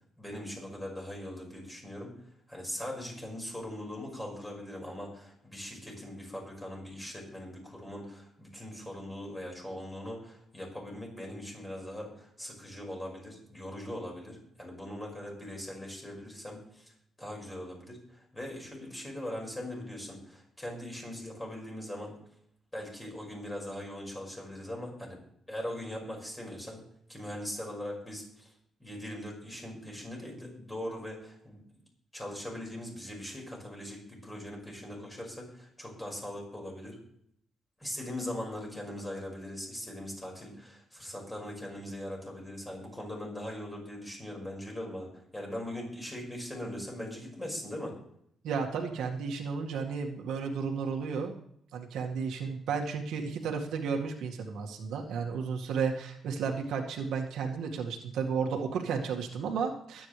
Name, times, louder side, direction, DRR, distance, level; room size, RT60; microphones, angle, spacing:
voice 1, 0.2-2.1 2.5-16.9 17.2-22.2 22.7-25.2 25.5-26.8 27.1-28.5 28.8-31.6 32.1-37.0 37.8-48.0, left 1 dB, 10° left, 0 dB, 5.5 m, -40 dB
voice 2, 48.4-51.3 51.7-60.1, right 5 dB, 90° right, 1 dB, 2.0 m, -33 dB
22.0 x 9.2 x 3.4 m, 0.68 s
cardioid pair, 130°, 0 cm